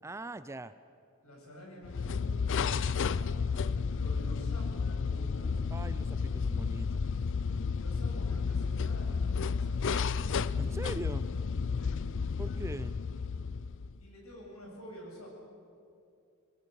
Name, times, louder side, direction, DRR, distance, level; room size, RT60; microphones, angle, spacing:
voice 1, 0.0-0.7 5.7-7.0 10.6-11.3 12.4-12.9, right 1 dB, 15° right, 13 dB, 0.5 m, -41 dB
voice 2, 1.2-5.6 7.7-10.0 11.8-11.9 14.0-15.3, equal, 75° left, -1 dB, 7.8 m, -49 dB
sound 1, 1.8-14.0, left 5 dB, 60° left, 0.5 m, -32 dB
24.0 x 20.0 x 8.2 m, 2.5 s
head